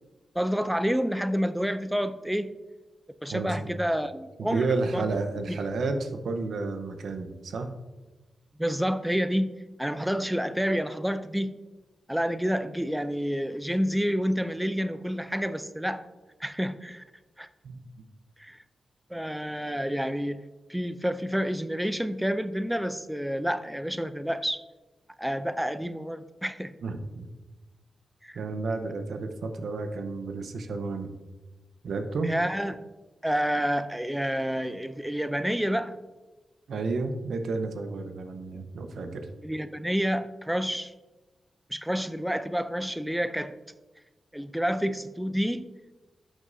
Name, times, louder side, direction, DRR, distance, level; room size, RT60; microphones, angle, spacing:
voice 1, 0.4-2.5 3.2-4.7 4.9-5.1 5.5-5.6 8.6-11.6 12.1-16.0 16.4-17.0 17.4-17.5 18.4-18.6 19.1-20.4 20.7-24.6 25.2-26.7 28.2-28.4 32.2-32.8 33.2-36.0 39.4-40.9 41.7-43.5 44.3-45.7, equal, 5° right, 12 dB, 0.5 m, -29 dB
voice 2, 3.3-3.7 4.4-7.7 17.6-17.8 26.8-27.3 28.3-31.1 31.8-32.3 36.7-39.2, right 3 dB, 80° right, 7 dB, 0.8 m, -31 dB
12.0 x 6.3 x 2.6 m, 1.2 s
cardioid pair, 50°, 0 cm